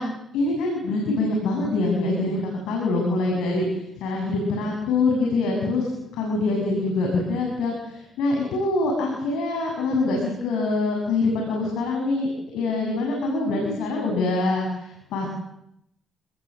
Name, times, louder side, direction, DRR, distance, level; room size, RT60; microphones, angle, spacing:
voice 1, 0.3-12.3 12.5-15.3, left 3 dB, 90° left, 0 dB, 8.0 m, -24 dB
27.5 x 21.5 x 7.9 m, 0.79 s
cardioid pair, 90°, 0 cm